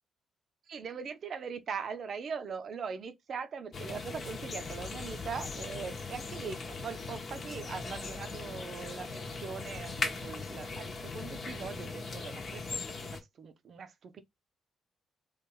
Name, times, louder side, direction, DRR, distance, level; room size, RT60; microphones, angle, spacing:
voice 1, 0.7-14.2, right 6 dB, 55° right, 0.6 m, -41 dB
sound 1, 3.7-13.2, left 4 dB, 50° left, 0.9 m, -39 dB
3.1 x 2.5 x 3.7 m
hypercardioid pair, 40°, 0 cm